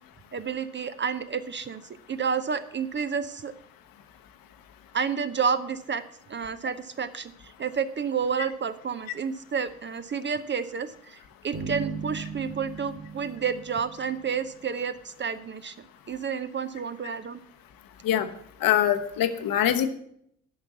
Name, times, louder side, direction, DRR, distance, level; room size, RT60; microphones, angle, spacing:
voice 1, 0.3-1.8 2.1-3.5 4.9-17.4, right 6 dB, 25° right, 11 dB, 0.6 m, -30 dB
sound 1, 11.5-14.6, right 5 dB, 45° right, 2.6 m, -38 dB
voice 2, 18.6-19.9, left 11 dB, 55° left, 8 dB, 1.1 m, -23 dB
10.5 x 5.9 x 8.2 m, 0.69 s
figure-of-eight pair, 40°, 42 cm